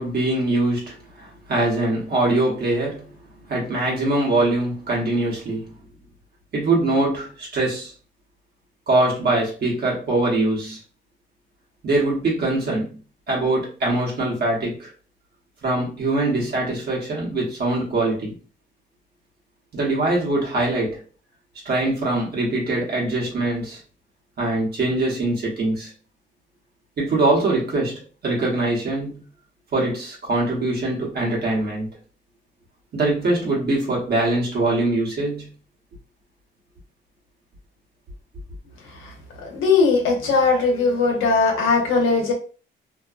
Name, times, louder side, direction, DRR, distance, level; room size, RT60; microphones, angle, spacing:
voice 1, 0.0-3.1 3.5-5.7 6.5-7.9 8.9-10.8 11.8-13.0 13.3-14.9 15.6-18.4 19.7-21.0 21.6-23.8 24.4-25.9 27.0-29.2 29.7-31.9 32.9-35.5, right 2 dB, 50° right, 1.0 m, -23 dB
voice 2, 38.8-42.3, left 4 dB, 85° left, 0.9 m, -20 dB
2.6 x 2.2 x 2.4 m
cardioid pair, 90°, 20 cm